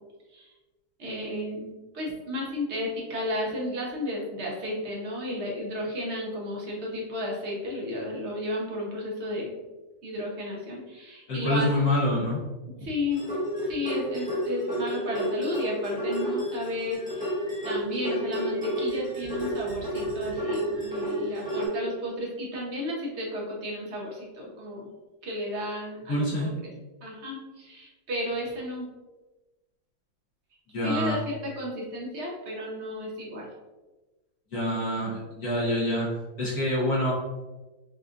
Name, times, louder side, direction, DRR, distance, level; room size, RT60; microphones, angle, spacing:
voice 1, 1.0-9.5 10.0-11.7 12.8-13.2 13.7-17.4 17.6-24.9 25.2-26.7 27.0-28.9 30.8-33.5, left 1 dB, 45° right, -3 dB, 1.0 m, -33 dB
voice 2, 11.3-12.4 26.1-26.6 30.7-31.2 34.5-37.1, left 1 dB, 60° left, -7 dB, 1.5 m, -26 dB
sound 1, 13.1-21.7, equal, 5° left, 0.6 m, -31 dB
5.8 x 2.5 x 2.5 m, 1.2 s
omnidirectional pair, 1.9 m